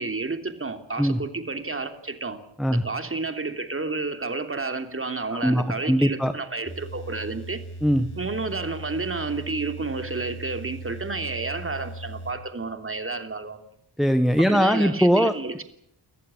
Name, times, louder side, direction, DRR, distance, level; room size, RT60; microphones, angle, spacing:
voice 1, 0.0-2.4 2.7-7.6 8.1-13.6 14.5-15.6, right 3 dB, 30° right, 7 dB, 3.1 m, -31 dB
voice 2, 5.4-6.3 7.8-8.1 14.0-15.3, equal, ahead, 10 dB, 1.2 m, -20 dB
sound 1, 6.7-12.3, right 2 dB, 25° left, 5.7 m, -39 dB
30.0 x 15.0 x 9.9 m, 0.73 s
wide cardioid pair, 105°, 44 cm